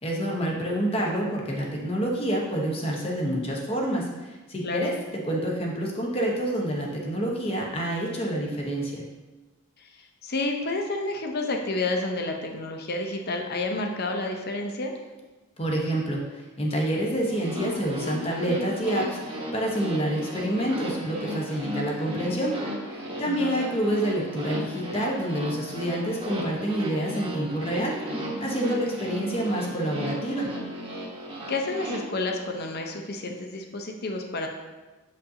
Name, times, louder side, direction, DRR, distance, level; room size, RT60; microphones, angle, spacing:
voice 1, 0.0-9.0 15.6-22.6 22.9-30.5, right 1 dB, 25° left, -2 dB, 1.1 m, -28 dB
voice 2, 10.2-14.9 23.2-23.6 31.5-34.5, left 2 dB, 45° left, 2 dB, 0.7 m, -30 dB
sound 1, 17.2-32.0, equal, 25° right, 1.1 m, -35 dB
7.8 x 5.2 x 2.8 m, 1.2 s
head